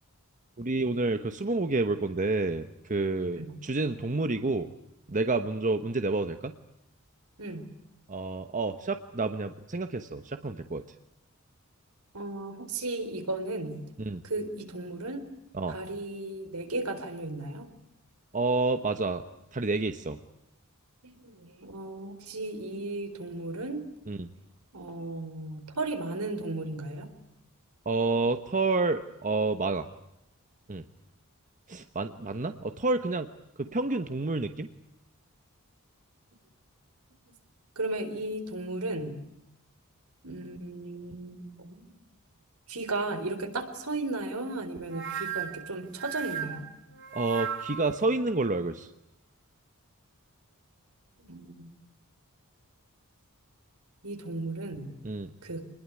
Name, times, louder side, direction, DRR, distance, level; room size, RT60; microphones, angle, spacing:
voice 1, 0.6-4.7 5.1-6.5 8.1-10.8 14.1-14.2 15.5-15.7 18.3-19.2 19.5-20.2 24.1-24.3 27.9-29.9 30.7-30.8 31.7-33.3 33.6-34.7 47.1-48.9 55.0-55.3, right 3 dB, 35° right, 8 dB, 1.1 m, -29 dB
voice 2, 3.2-3.6 7.4-7.7 12.1-13.8 14.2-15.2 15.7-17.7 21.0-23.8 24.7-27.1 37.8-39.2 40.2-41.9 42.7-46.7 51.2-51.7 54.0-54.9 55.4-55.6, right 2 dB, 75° right, 7 dB, 4.2 m, -35 dB
sound 1, 44.9-48.0, right 8 dB, 55° right, 2.6 m, -36 dB
27.0 x 21.0 x 9.7 m, 0.86 s
head